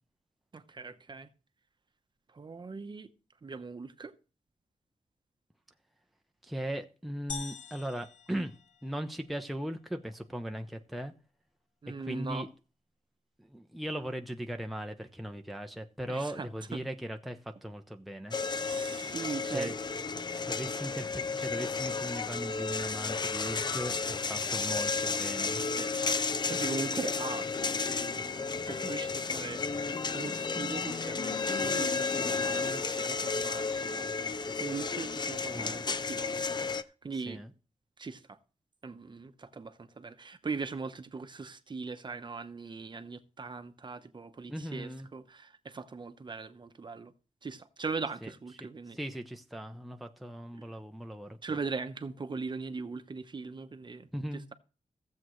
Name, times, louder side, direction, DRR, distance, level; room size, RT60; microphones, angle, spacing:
voice 1, 0.5-1.3 2.3-3.1 3.4-4.1 11.8-12.5 16.1-16.8 18.6-19.7 25.7-26.0 26.5-27.5 28.0-34.1 34.6-37.4 38.0-38.4 38.8-47.1 47.4-49.0 50.5-50.7 51.4-54.5, right 4 dB, 35° right, 0.9 m, -40 dB
voice 2, 6.4-8.5 8.8-11.1 12.0-12.5 13.4-18.4 19.5-19.8 20.5-25.6 35.5-35.8 37.3-37.5 44.5-45.1 48.2-48.3 48.6-48.7 48.9-51.4 54.1-54.5, equal, ahead, 0.7 m, -38 dB
sound 1, 7.3-9.2, left 6 dB, 80° left, 1.3 m, -44 dB
sound 2, 18.3-36.8, left 4 dB, 35° left, 0.5 m, -32 dB
15.0 x 7.6 x 3.1 m
wide cardioid pair, 110°, 13 cm